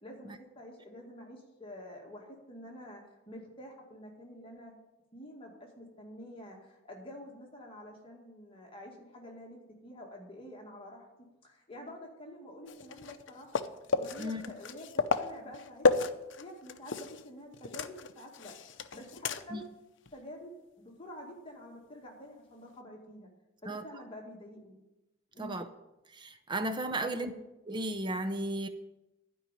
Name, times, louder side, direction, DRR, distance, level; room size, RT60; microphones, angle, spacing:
voice 1, 0.0-4.8 5.1-11.1 11.4-13.5 14.0-16.0 16.4-19.6 20.1-23.3 23.6-24.8 25.3-25.6 27.0-27.4, left 1 dB, 25° left, -1 dB, 2.1 m, -48 dB
sound 1, 12.7-17.3 17.5-19.7 20.1-20.2 22.7-22.8, left 4 dB, 65° left, 0.6 m, -33 dB
voice 2, 26.1-27.3 27.7-28.7, right 1 dB, 25° right, 9 dB, 0.6 m, -34 dB
12.0 x 5.4 x 9.0 m, 0.98 s
head